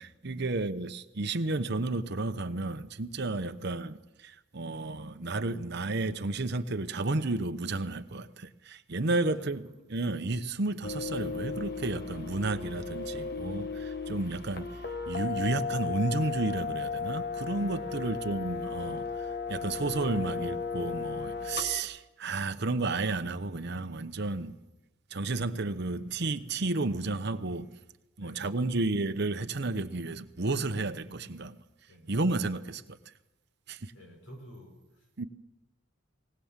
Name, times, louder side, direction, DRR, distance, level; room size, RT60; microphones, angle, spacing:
voice 1, 0.0-9.6 9.9-14.7 15.1-24.6 25.1-27.7 28.2-31.6 32.1-33.0 33.7-33.9 35.2-35.3, right 2 dB, 55° right, 9 dB, 0.9 m, -32 dB
sound 1, 10.8-21.8, left 5 dB, 50° left, 1.2 m, -35 dB
voice 2, 21.3-21.7 24.4-24.6 28.2-28.7 31.9-32.2 33.9-35.3, equal, 75° left, 2 dB, 5.8 m, -51 dB
19.5 x 19.0 x 7.4 m, 1.0 s
head